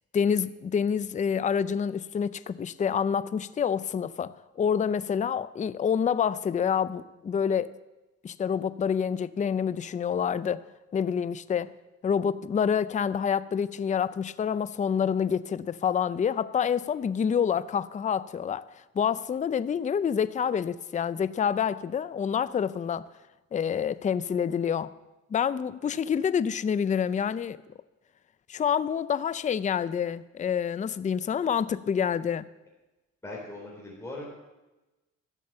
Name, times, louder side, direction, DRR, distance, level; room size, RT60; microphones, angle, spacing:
voice 1, 0.1-7.7 8.2-10.6 10.9-11.7 12.0-18.6 19.0-23.1 23.5-24.9 25.3-27.6 28.5-32.4, left 7 dB, 25° left, 15 dB, 0.4 m, -27 dB
voice 2, 33.2-34.3, left 2 dB, 10° left, -5 dB, 4.1 m, -39 dB
12.5 x 7.1 x 7.6 m, 1.1 s
cardioid pair, 90°, 30 cm